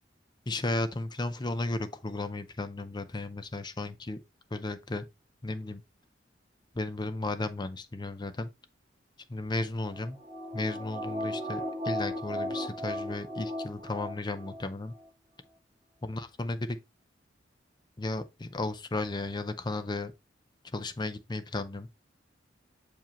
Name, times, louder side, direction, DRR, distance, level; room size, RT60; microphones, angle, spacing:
voice 1, 0.5-4.2 4.5-5.0 5.4-5.8 6.7-8.5 9.3-10.2 10.5-14.9 16.0-16.7 18.0-20.1 20.7-21.9, left 2 dB, 25° left, 0.6 m, -34 dB
sound 1, 9.8-14.6 14.9-15.0, equal, 25° right, 2.3 m, -36 dB
7.1 x 4.9 x 3.0 m
head